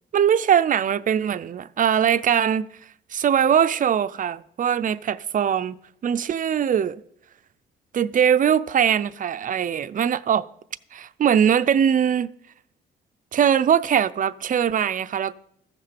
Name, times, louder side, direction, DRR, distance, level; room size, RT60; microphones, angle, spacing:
voice 1, 0.1-2.7 3.1-5.8 6.0-7.0 7.9-10.5 10.9-12.3 13.3-15.4, right 8 dB, 40° right, 0.5 m, -21 dB
14.5 x 6.5 x 5.9 m
cardioid pair, 90°, 20 cm